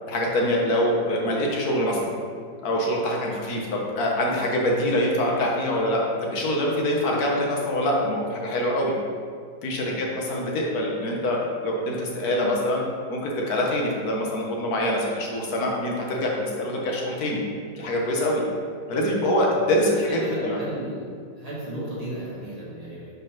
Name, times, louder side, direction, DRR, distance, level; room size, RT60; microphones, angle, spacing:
voice 1, 0.1-2.1 2.6-9.0 9.6-12.8 13.1-17.4 17.7-18.4 18.9-20.6, left 1 dB, 60° left, -1 dB, 1.5 m, -24 dB
voice 2, 20.1-21.1 21.4-23.1, right 1 dB, 20° right, -8 dB, 1.8 m, -35 dB
5.2 x 4.0 x 5.9 m, 2.2 s
omnidirectional pair, 1.9 m